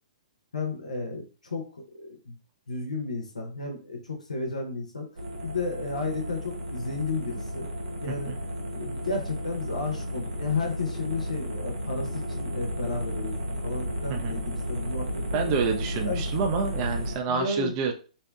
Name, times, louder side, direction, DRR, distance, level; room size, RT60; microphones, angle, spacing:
voice 1, 0.5-2.4 2.7-7.7 8.0-8.3 8.7-13.4 13.6-15.6 16.0-16.2 17.3-17.7, left 3 dB, 80° left, 2 dB, 0.6 m, -33 dB
sound 1, 5.2-17.2, equal, 70° right, 0.8 m, -33 dB
voice 2, 15.3-17.9, right 5 dB, 35° right, 3 dB, 0.4 m, -28 dB
2.7 x 2.1 x 2.2 m, 0.36 s
figure-of-eight pair, 115°, 4 cm